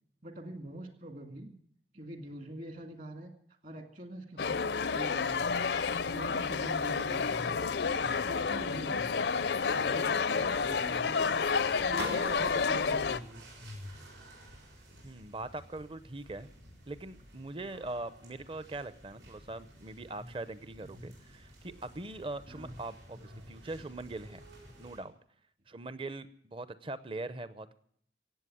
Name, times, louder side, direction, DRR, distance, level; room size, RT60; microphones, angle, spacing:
voice 1, 0.2-1.6 1.9-3.3 3.6-5.6 6.1-7.6 7.9-9.1 9.6-11.5 11.8-13.4 20.8-21.1 22.5-22.7, right 1 dB, 50° right, 5 dB, 2.1 m, -44 dB
sound 1, 4.4-13.2, left 5 dB, 65° left, 0.5 m, -30 dB
sound 2, 7.4-25.0, equal, 90° right, 6.9 m, -53 dB
sound 3, 11.9-12.9, right 2 dB, 70° right, 1.7 m, -46 dB
voice 2, 15.0-16.5 16.9-24.4 24.8-25.1 25.7-27.8, right 2 dB, 30° right, 14 dB, 0.7 m, -41 dB
17.0 x 8.1 x 9.8 m, 0.65 s
head